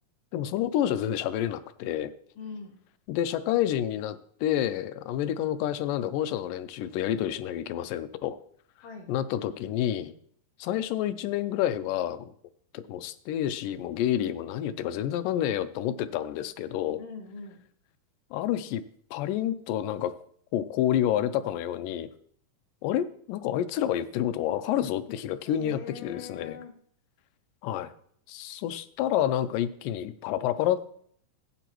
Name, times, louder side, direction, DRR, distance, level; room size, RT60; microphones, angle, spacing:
voice 1, 0.3-2.1 3.1-8.4 9.1-10.1 10.6-12.3 12.7-17.0 18.3-18.8 19.1-20.1 20.5-22.1 22.8-26.6 27.6-27.9 28.3-31.0, left 11 dB, 85° left, 12 dB, 2.3 m, -29 dB
voice 2, 2.4-2.8 8.8-9.1 16.9-17.6 25.4-26.7, left 5 dB, 55° left, 2 dB, 2.2 m, -42 dB
16.0 x 9.0 x 3.0 m, 0.63 s
omnidirectional pair, 3.8 m